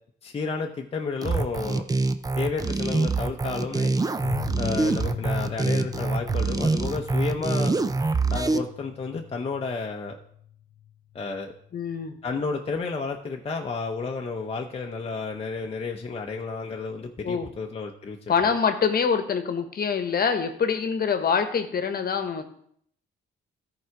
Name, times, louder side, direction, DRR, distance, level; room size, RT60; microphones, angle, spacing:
voice 1, 0.2-1.9 2.4-3.9 4.6-7.7 8.3-10.2 11.1-11.5 12.2-18.2, left 4 dB, 30° left, 2 dB, 0.8 m, -31 dB
sound 1, 1.2-8.6, right 3 dB, 20° right, 0.5 m, -25 dB
sound 2, 4.2-11.3 11.6-11.7 12.0-12.1, left 11 dB, 85° left, 0.5 m, -39 dB
voice 2, 11.7-12.1 17.2-17.5 18.3-22.4, left 6 dB, 50° left, 7 dB, 1.2 m, -25 dB
13.5 x 4.8 x 4.7 m, 0.67 s
cardioid pair, 90°, 20 cm